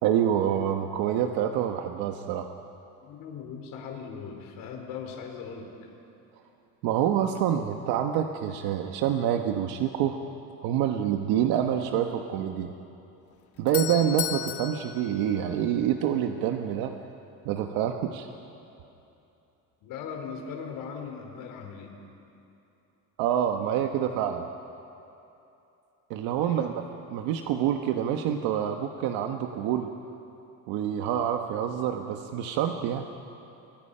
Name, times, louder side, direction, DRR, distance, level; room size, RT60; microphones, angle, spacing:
voice 1, 0.0-2.5 6.8-10.2 10.6-12.7 13.6-16.9 17.4-18.3 23.2-24.4 26.1-26.7 27.1-29.9 30.7-33.0, right 10 dB, 85° right, 4 dB, 1.3 m, -27 dB
voice 2, 3.0-5.7 19.8-21.9 26.4-26.7, left 6 dB, 65° left, 2 dB, 4.5 m, -39 dB
Doorbell, 13.3-16.2, left 12 dB, 40° left, 1.3 m, -35 dB
30.0 x 24.5 x 5.7 m, 2.8 s
cardioid pair, 170°, 35 cm